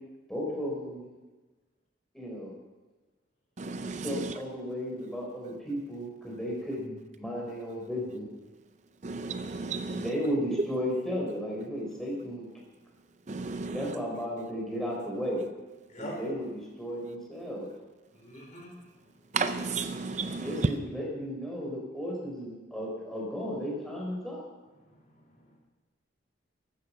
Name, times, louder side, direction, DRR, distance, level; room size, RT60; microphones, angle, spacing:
voice 1, 0.3-1.0 2.1-2.5 4.0-8.3 9.9-12.4 13.7-15.4 16.0-17.7 20.4-24.4, equal, ahead, -3 dB, 4.5 m, -34 dB
voice 2, 3.6-4.4 9.0-10.1 13.3-14.0 19.3-20.8, right 4 dB, 40° right, 9 dB, 0.6 m, -32 dB
voice 3, 18.2-18.7 24.8-25.6, equal, 40° left, -1 dB, 5.0 m, -45 dB
14.0 x 13.5 x 5.7 m, 1.2 s
head